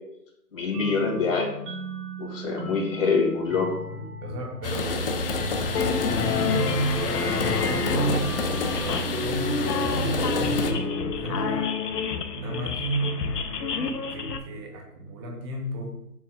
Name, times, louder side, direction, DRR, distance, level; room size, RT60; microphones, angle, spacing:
voice 1, 0.5-1.5 2.2-3.8, left 4 dB, 50° left, 1 dB, 2.3 m, -25 dB
sound 1, 0.7-10.1, right 1 dB, 75° right, 1.8 m, -39 dB
voice 2, 3.9-5.0 6.0-11.8 12.3-13.3 13.8-16.0, right 2 dB, 15° right, 1 dB, 0.9 m, -32 dB
sound 2, 4.6-10.7, left 2 dB, 35° left, 0.6 m, -29 dB
sound 3, 5.7-14.4, left 5 dB, 80° left, 0.8 m, -29 dB
7.4 x 6.0 x 2.4 m, 0.82 s
hypercardioid pair, 145°, 48 cm